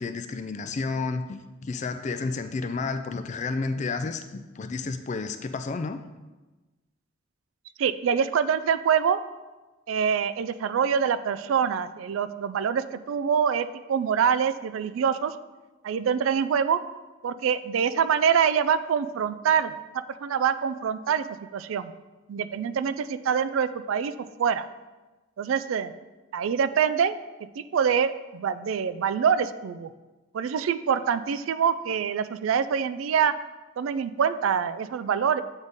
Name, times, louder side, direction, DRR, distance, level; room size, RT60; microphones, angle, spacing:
voice 1, 0.0-6.0, left 4 dB, 35° left, 9 dB, 0.3 m, -31 dB
voice 2, 7.8-9.2 9.9-15.3 15.8-16.8 17.2-19.7 20.2-21.9 22.3-24.1 24.4-24.7 25.4-25.9 26.3-27.1 27.6-29.9 30.3-33.3 33.8-35.4, right 7 dB, 80° right, 14 dB, 0.3 m, -25 dB
8.0 x 3.5 x 4.0 m, 1.2 s
head